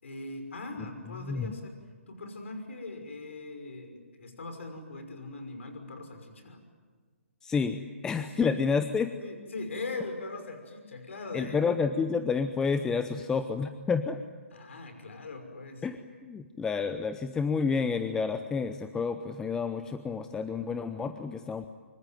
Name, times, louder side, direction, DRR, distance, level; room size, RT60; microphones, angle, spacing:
voice 1, 0.0-1.8 2.1-6.6 8.4-8.6 9.2-11.7 14.5-15.8, left 3 dB, 65° left, 6 dB, 5.8 m, -40 dB
voice 2, 7.4-9.1 11.3-14.2 15.8-16.0 16.2-21.7, left 5 dB, 10° left, 9 dB, 0.8 m, -29 dB
25.0 x 24.0 x 9.2 m, 1.5 s
hypercardioid pair, 145°, 7 cm